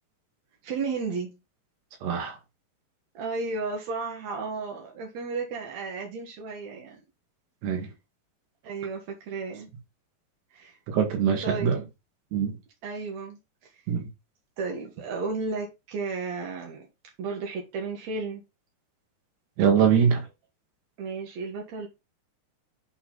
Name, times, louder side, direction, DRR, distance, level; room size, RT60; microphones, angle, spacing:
voice 1, 0.6-1.4 3.1-7.0 7.8-7.9 8.6-9.7 10.5-10.8 11.4-11.9 12.8-13.9 14.6-16.9 17.2-18.4 21.0-21.9, right 4 dB, 60° right, 2.0 m, -33 dB
voice 2, 2.0-2.4 7.6-7.9 10.9-11.8 12.3-12.5 13.9-14.0 19.6-20.2, right 7 dB, 75° right, 3.9 m, -23 dB
11.0 x 4.4 x 3.9 m
omnidirectional pair, 5.1 m